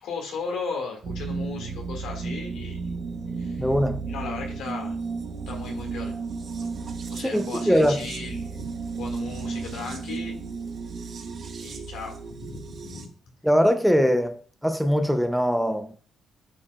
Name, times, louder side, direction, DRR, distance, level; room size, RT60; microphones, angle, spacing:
voice 1, 0.0-2.8 3.4-3.7 4.1-5.0 5.5-6.2 7.1-8.7 9.0-10.4 11.6-13.1, left 4 dB, 85° left, 1.9 m, -36 dB
sound 1, 1.0-13.1, right 4 dB, 55° right, 0.9 m, -33 dB
voice 2, 3.6-4.1 7.3-8.1 13.4-15.9, equal, ahead, 0.5 m, -22 dB
8.3 x 5.1 x 2.3 m
cardioid pair, 90°, 0 cm